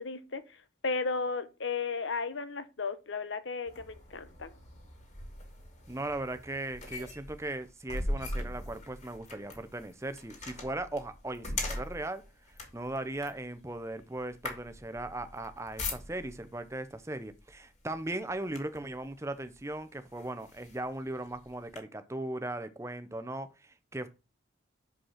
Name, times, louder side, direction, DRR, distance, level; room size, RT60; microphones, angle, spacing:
voice 1, 0.0-4.5, left 4 dB, 75° left, 1.0 m, -35 dB
sound 1, 3.7-16.5 17.3-17.5 17.9-19.0 19.6-19.7 20.1-21.8, left 2 dB, 35° left, 2.5 m, -41 dB
voice 2, 5.9-12.2 12.7-24.1, right 2 dB, 15° right, 0.6 m, -38 dB
6.5 x 5.3 x 5.7 m
head